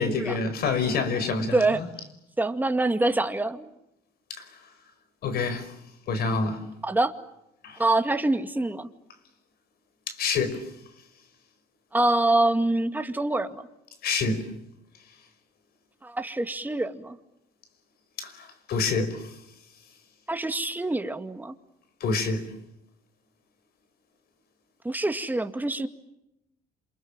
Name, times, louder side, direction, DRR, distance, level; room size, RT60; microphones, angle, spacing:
voice 1, 0.0-1.9 4.3-4.5 5.2-5.8 6.1-6.6 7.6-7.8 10.1-10.7 14.0-14.4 18.2-19.4 22.0-22.5, left 4 dB, 65° left, 5.2 m, -27 dB
voice 2, 1.4-1.8 2.4-3.6 6.8-7.1 7.8-8.9 11.9-13.6 16.0-17.2 20.3-21.5 24.8-25.9, right 2 dB, 10° right, 2.1 m, -25 dB
28.0 x 27.5 x 7.5 m
cardioid pair, 110°, 17 cm